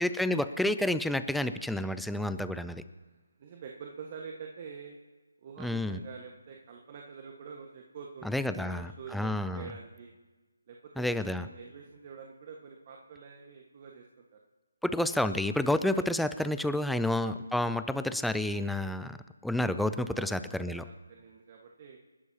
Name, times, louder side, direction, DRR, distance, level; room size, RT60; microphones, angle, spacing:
voice 1, 0.0-2.8 5.6-6.0 8.2-9.7 11.0-11.5 14.8-19.2 19.4-20.8, left 1 dB, ahead, 11 dB, 0.5 m, -30 dB
voice 2, 3.4-5.0 5.4-10.1 10.7-14.4 19.9-22.0, right 6 dB, 35° right, 0 dB, 1.5 m, -47 dB
28.5 x 12.0 x 2.9 m, 1.3 s
figure-of-eight pair, 150°, 0 cm